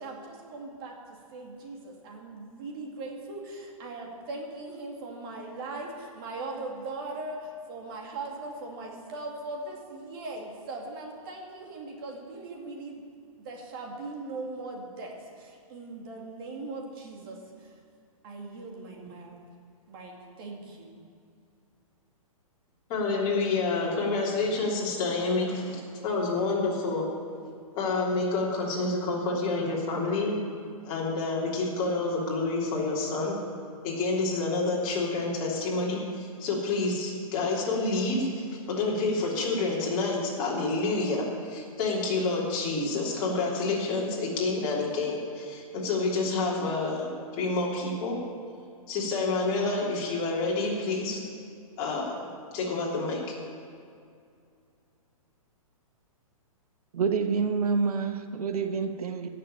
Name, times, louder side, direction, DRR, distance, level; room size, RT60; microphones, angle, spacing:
voice 1, 0.0-13.0 13.4-17.7 18.2-19.4 19.9-21.0, right 2 dB, 40° right, 0 dB, 2.4 m, -40 dB
voice 2, 22.9-27.1 27.7-30.3 30.8-33.3 33.8-48.2 48.9-51.2 51.8-52.2 52.5-53.3, left 3 dB, 30° left, -4 dB, 3.2 m, -28 dB
voice 3, 56.9-59.3, right 5 dB, 85° right, 7 dB, 1.2 m, -27 dB
16.5 x 6.8 x 8.8 m, 2.3 s
hypercardioid pair, 155°, 19 cm